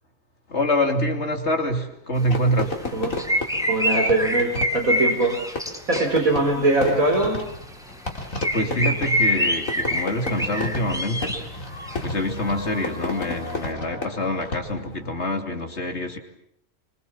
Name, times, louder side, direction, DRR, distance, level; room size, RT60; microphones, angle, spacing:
voice 1, 0.5-2.8 8.5-16.2, left 1 dB, 50° left, 4 dB, 3.3 m, -26 dB
Fireworks, 2.3-15.0, left 2 dB, 70° left, 3.8 m, -33 dB
sound 1, 3.2-6.3 7.2-7.5 8.4-11.4 11.8-12.0, equal, ahead, 2.4 m, -25 dB
voice 2, 3.7-5.4 5.9-7.4, right 2 dB, 80° right, 1 dB, 4.7 m, -21 dB
25.5 x 25.5 x 7.3 m, 0.71 s
omnidirectional pair, 1.4 m